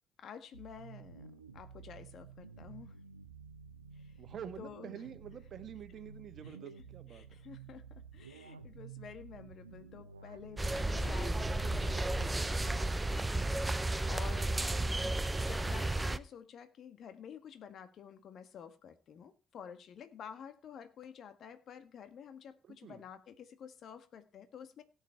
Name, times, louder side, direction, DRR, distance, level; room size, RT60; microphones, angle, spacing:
voice 1, 0.2-2.9 3.9-4.2 4.6-4.9 6.4-6.6 7.1-15.0 15.4-24.8, left 8 dB, 50° left, 10 dB, 1.6 m, -51 dB
sound 1, 0.5-12.8, right 6 dB, 80° right, 0.9 m, -52 dB
voice 2, 4.2-7.4 22.6-23.0, right 8 dB, 45° right, 10 dB, 1.5 m, -47 dB
sound 2, 10.6-16.2, right 2 dB, 15° right, 0.8 m, -33 dB
17.0 x 8.1 x 4.6 m, 0.33 s
figure-of-eight pair, 50°, 0 cm